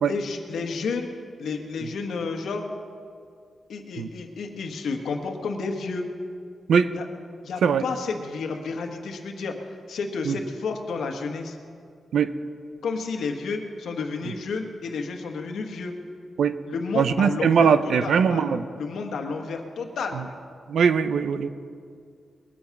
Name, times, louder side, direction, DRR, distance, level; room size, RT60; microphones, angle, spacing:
voice 1, 0.0-1.1 1.4-2.7 3.7-6.1 6.9-7.0 7.4-11.6 12.8-15.9 16.7-20.2, left 4 dB, 90° left, 3 dB, 1.5 m, -31 dB
voice 2, 17.0-18.7 20.7-21.5, right 6 dB, 85° right, 12 dB, 0.6 m, -21 dB
21.0 x 8.7 x 5.9 m, 2.3 s
wide cardioid pair, 145°, 0 cm